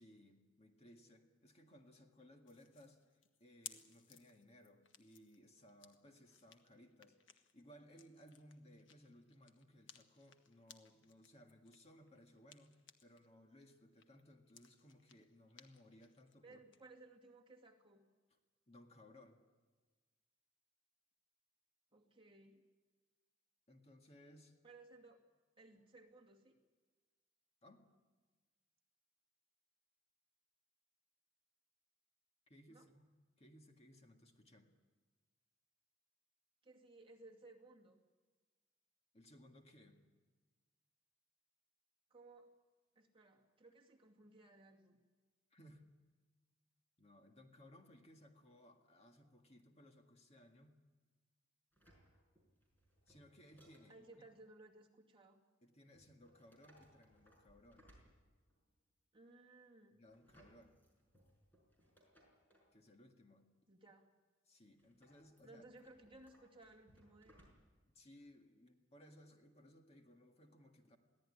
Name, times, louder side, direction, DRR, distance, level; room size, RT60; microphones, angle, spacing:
voice 1, 0.0-3.0 3.4-16.6 18.7-19.4 23.7-24.6 27.6-27.8 32.5-33.1 33.4-34.7 39.1-40.0 45.5-45.9 47.0-50.8 53.1-54.1 55.6-57.9 60.0-60.8 62.7-63.5 64.5-65.6 67.9-71.0, equal, 35° left, 4 dB, 1.9 m, -63 dB
sound 1, 2.5-13.3 13.6-16.8, left 8 dB, 70° left, 1.4 m, -61 dB
voice 2, 16.4-18.0 21.9-22.6 24.6-25.2 25.6-26.6 32.7-32.9 36.6-38.0 42.1-42.5 43.0-45.0 53.9-55.4 59.1-60.0 63.7-64.1 65.4-67.5, right 2 dB, 25° right, 1 dB, 2.3 m, -60 dB
sound 2, 51.7-54.4 55.9-58.7 60.1-62.7 64.8-67.9 68.2-68.3, equal, 10° left, 5.6 m, -69 dB
22.5 x 16.0 x 9.8 m, 1.4 s
head